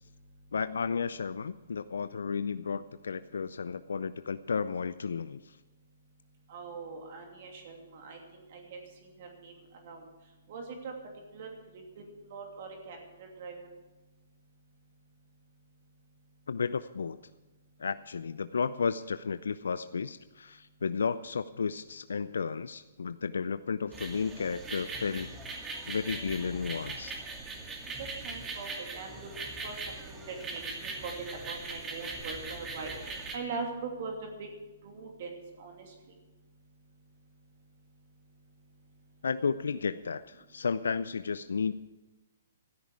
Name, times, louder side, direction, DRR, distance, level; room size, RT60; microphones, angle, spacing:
voice 1, 0.5-5.6 16.5-17.2 17.8-25.3 25.9-27.1 39.2-41.7, left 5 dB, 75° left, 13 dB, 0.5 m, -33 dB
voice 2, 6.5-8.2 8.5-8.8 9.2-9.5 9.8-10.0 10.5-10.9 11.3-11.5 12.0-12.1 12.3-13.6 28.2-34.5 34.8-35.8, right 4 dB, 50° right, 2 dB, 2.7 m, -41 dB
sound 1, 23.9-33.4, right 3 dB, 15° right, 2.4 m, -40 dB
15.0 x 13.5 x 4.8 m, 1.2 s
hypercardioid pair, 135°, 0 cm